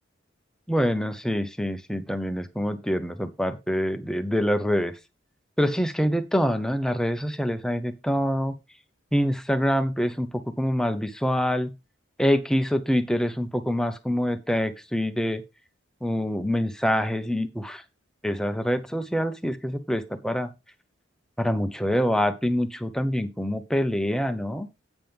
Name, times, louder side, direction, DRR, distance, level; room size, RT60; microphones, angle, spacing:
voice 1, 0.7-4.9 5.6-8.5 9.1-11.7 12.2-15.4 16.0-17.8 18.2-20.5 21.4-24.7, equal, 5° left, 9 dB, 0.8 m, -25 dB
9.2 x 7.4 x 3.5 m, 0.24 s
head